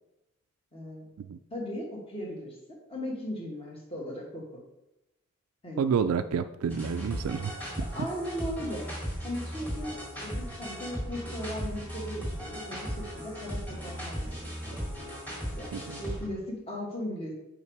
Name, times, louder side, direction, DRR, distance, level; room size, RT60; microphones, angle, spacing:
voice 1, 0.7-1.0 1.5-4.6 5.6-5.9 7.9-8.9 9.2-9.9 10.2-14.8 15.5-17.3, equal, 25° left, -2 dB, 1.6 m, -37 dB
voice 2, 5.8-7.5 15.7-16.0, right 6 dB, 85° right, 10 dB, 0.3 m, -29 dB
sound 1, 6.7-16.3, equal, 10° left, 2.1 m, -37 dB
5.6 x 5.2 x 4.6 m, 0.90 s
head